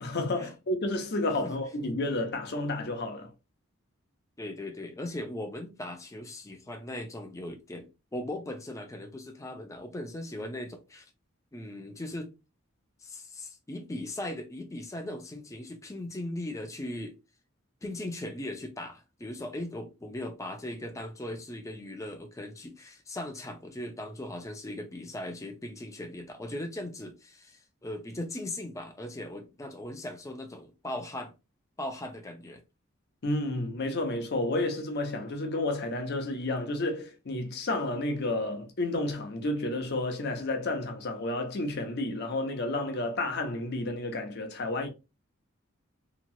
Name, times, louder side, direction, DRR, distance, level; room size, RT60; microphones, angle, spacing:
voice 1, 0.0-3.3 33.2-44.9, left 2 dB, 50° left, 0.6 m, -31 dB
voice 2, 4.4-11.1 11.5-12.3 13.0-17.2 17.8-31.3 31.8-32.6, left 1 dB, 15° left, 0.4 m, -38 dB
2.9 x 2.3 x 2.6 m
head